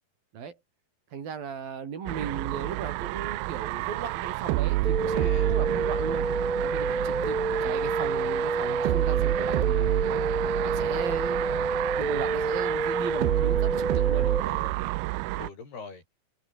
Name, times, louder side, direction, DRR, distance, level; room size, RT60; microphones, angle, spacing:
voice 1, 1.1-6.3 6.6-9.9 10.6-11.4 11.9-14.3, right 7 dB, 65° right, 5.1 m, -37 dB
sound 1, 2.1-15.5, right 20 dB, 80° right, 2.2 m, -29 dB
sound 2, 4.8-14.4, right 3 dB, 35° right, 0.6 m, -29 dB
voice 2, 5.1-5.6 7.0-7.4 14.2-14.9 15.3-16.0, left 4 dB, 75° left, 9.2 m, -44 dB
omnidirectional pair, 4.6 m